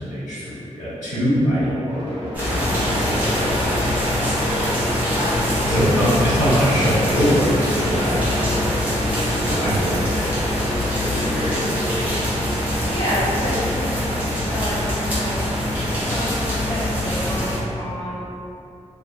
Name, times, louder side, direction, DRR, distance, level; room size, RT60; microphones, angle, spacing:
voice 1, 0.0-4.1 5.6-9.0 9.4-11.8 12.1-12.2, equal, 80° left, -12 dB, 1.4 m, -24 dB
sound 1, 1.9-14.3 14.9-17.0, equal, 40° right, 0.8 m, -33 dB
Out into the Rain then back inside, 2.3-17.6, left 1 dB, 15° right, 0.8 m, -23 dB
voice 2, 5.2-5.5 12.8-14.8 15.0-15.6 16.0-18.3, equal, 55° left, -13 dB, 1.2 m, -29 dB
2.7 x 2.5 x 2.3 m, 2.6 s
wide cardioid pair, 130°, 13 cm